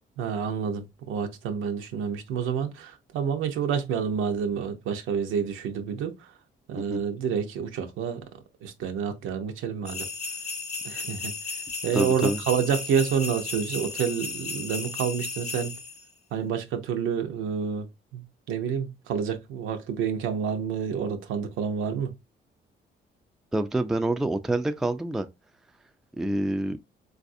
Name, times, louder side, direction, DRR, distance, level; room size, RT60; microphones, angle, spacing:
voice 1, 0.2-6.1 6.7-8.2 8.6-10.1 10.8-11.3 11.8-15.7 16.3-17.9 18.1-18.2 18.5-22.1, right 7 dB, 90° right, 0.7 m, -28 dB
sound 1, 9.9-16.0, left 4 dB, 35° left, 0.8 m, -35 dB
voice 2, 11.9-12.4 23.5-25.3 26.2-26.8, right 1 dB, ahead, 0.3 m, -27 dB
4.0 x 2.5 x 2.6 m
cardioid pair, 90°, 20 cm